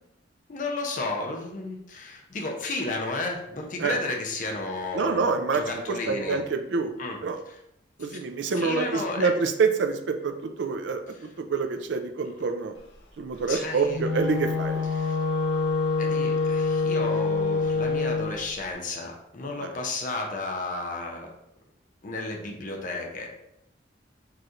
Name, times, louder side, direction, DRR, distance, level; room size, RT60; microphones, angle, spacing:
voice 1, 0.5-5.2 5.5-6.4 7.0-7.2 7.5-7.6 8.0-8.2 8.6-9.3 13.5-14.0 14.9-15.2 16.0-21.3 22.0-23.3, left 2 dB, 45° left, 1 dB, 0.6 m, -33 dB
voice 2, 4.9-6.9 7.2-7.4 8.0-12.7 13.2-14.9, right 4 dB, 70° right, 6 dB, 0.4 m, -27 dB
Wind instrument woodwind instrument, 13.8-18.4, left 4 dB, 85° left, 0.8 m, -26 dB
4.7 x 3.0 x 2.5 m, 0.81 s
head